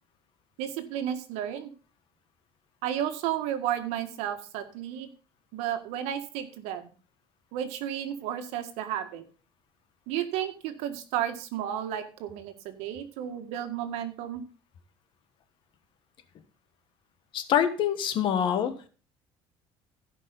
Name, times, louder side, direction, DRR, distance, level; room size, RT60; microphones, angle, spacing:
voice 1, 0.6-1.7 2.8-5.1 5.5-6.9 7.5-9.2 10.1-14.4, right 10 dB, 85° right, 8 dB, 1.8 m, -32 dB
voice 2, 17.3-18.9, left 9 dB, 50° left, 10 dB, 1.4 m, -25 dB
16.0 x 5.5 x 5.3 m, 0.38 s
cardioid pair, 155°, 11 cm